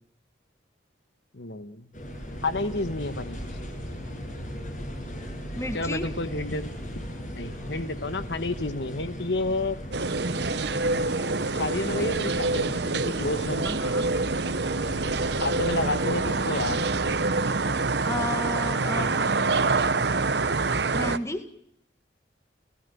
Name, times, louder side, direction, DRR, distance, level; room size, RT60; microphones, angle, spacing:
voice 1, 1.3-1.9 2.4-3.4 5.7-6.7 7.3-9.8 11.5-13.7 15.4-16.8 19.0-19.1, left 2 dB, 70° left, 11 dB, 1.4 m, -30 dB
sound 1, 1.9-17.2, equal, 40° left, 7.6 m, -38 dB
voice 2, 5.6-6.1 13.6-14.1 18.0-19.4 20.9-21.5, left 1 dB, 15° left, 9 dB, 1.9 m, -32 dB
sound 2, 9.9-21.2, right 3 dB, 65° right, 1.0 m, -26 dB
30.0 x 17.0 x 8.4 m, 0.72 s
head